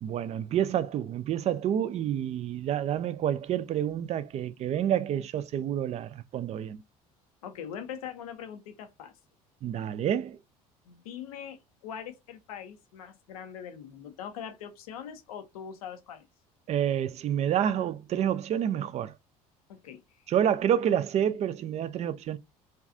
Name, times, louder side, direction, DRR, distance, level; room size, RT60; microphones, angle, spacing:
voice 1, 0.0-6.8 9.6-10.4 16.7-19.1 20.3-22.4, right 10 dB, 35° right, 0.4 m, -28 dB
voice 2, 7.4-9.1 10.9-16.2 19.7-20.2, left 8 dB, 75° left, 0.5 m, -42 dB
2.6 x 2.3 x 2.5 m
figure-of-eight pair, 60°, 19 cm